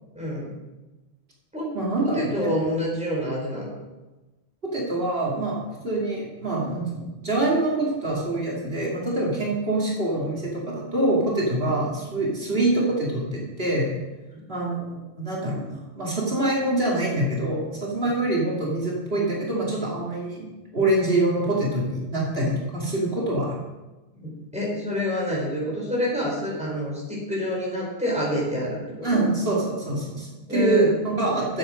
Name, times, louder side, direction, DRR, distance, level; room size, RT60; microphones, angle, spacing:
voice 1, 0.1-0.5 1.5-1.7 2.0-3.7 14.3-14.4 24.1-29.1 30.5-30.9, left 1 dB, 5° right, -4 dB, 4.6 m, -27 dB
voice 2, 1.7-2.5 4.7-13.9 14.5-15.6 16.0-23.6 29.0-31.6, right 2 dB, 70° right, -5 dB, 2.8 m, -25 dB
12.5 x 8.1 x 5.2 m, 1.1 s
omnidirectional pair, 1.1 m